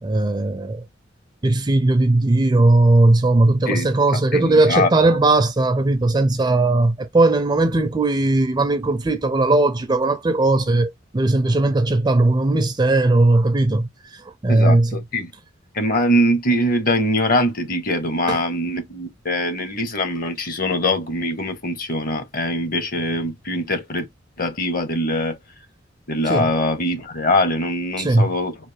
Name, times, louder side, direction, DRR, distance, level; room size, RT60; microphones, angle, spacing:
voice 1, 0.0-0.8 1.4-13.9 14.4-15.0 18.3-18.4 26.3-26.5 28.0-28.3, right 2 dB, 20° right, 0.4 m, -18 dB
voice 2, 4.3-4.9 14.5-15.3 15.7-24.1 24.4-25.4 26.1-28.6, left 1 dB, 50° left, 0.8 m, -22 dB
3.2 x 2.4 x 3.2 m
head